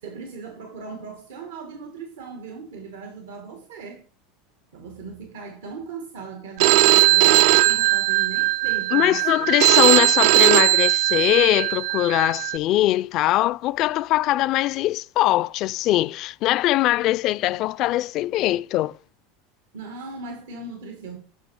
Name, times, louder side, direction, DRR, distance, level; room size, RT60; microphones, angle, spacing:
voice 1, 0.0-4.1 4.7-9.5 19.7-21.2, right 4 dB, 90° right, 1.5 m, -38 dB
Telephone, 6.6-12.6, right 17 dB, 70° right, 0.3 m, -18 dB
voice 2, 8.9-19.0, left 15 dB, 50° left, 0.3 m, -21 dB
8.2 x 5.5 x 6.0 m
supercardioid pair, 125°, 0 cm